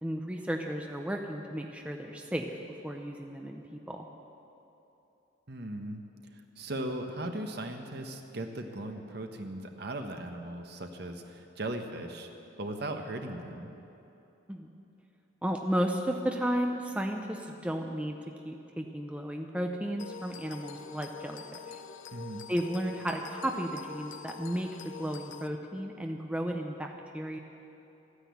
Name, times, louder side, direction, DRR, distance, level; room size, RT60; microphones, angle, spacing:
voice 1, 0.0-2.6 2.8-4.1 14.5-14.7 15.4-18.2 18.4-21.8 22.5-27.4, equal, 5° right, 2 dB, 0.6 m, -34 dB
voice 2, 5.5-6.0 6.3-12.3 12.6-13.7 22.1-22.4, right 1 dB, 55° right, 5 dB, 1.1 m, -38 dB
sound 1, 20.0-25.5, left 6 dB, 75° left, 0.6 m, -45 dB
13.5 x 9.9 x 8.4 m, 3.0 s
head